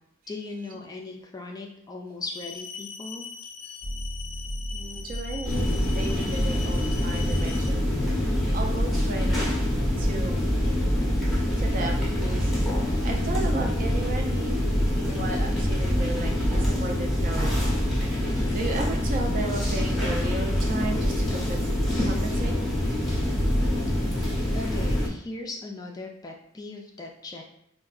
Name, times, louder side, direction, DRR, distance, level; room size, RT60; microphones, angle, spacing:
voice 1, 0.3-3.3 24.5-27.4, left 3 dB, 20° left, 1 dB, 0.3 m, -38 dB
sound 1, 2.3-7.7, left 6 dB, 90° left, 0.4 m, -41 dB
sound 2, 3.8-19.1, equal, 75° right, 1.2 m, -36 dB
voice 2, 4.7-7.9 8.1-9.5 10.0-10.4 11.6-12.5 12.8-14.6 14.9-17.5 18.5-21.7 22.0-22.6, right 2 dB, 45° right, 2 dB, 0.5 m, -35 dB
sound 3, 5.4-25.1, equal, ahead, 0.7 m, -25 dB
3.6 x 2.2 x 2.4 m, 0.74 s
head